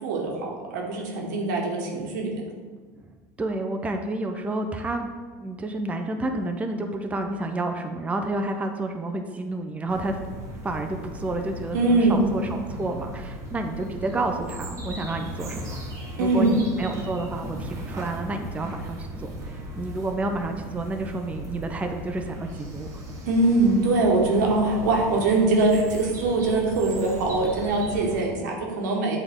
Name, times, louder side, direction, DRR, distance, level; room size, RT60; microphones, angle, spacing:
voice 1, 0.0-2.3 11.7-12.3 16.2-16.5 23.3-29.2, right 2 dB, 85° right, 0 dB, 1.2 m, -22 dB
voice 2, 3.4-5.1 5.4-10.2 10.6-15.8 16.2-22.9, right 2 dB, 15° right, 4 dB, 0.5 m, -30 dB
sound 1, 9.9-28.3, right 1 dB, 35° right, 1.2 m, -37 dB
7.8 x 3.5 x 3.6 m, 1.5 s
supercardioid pair, 110°, 9 cm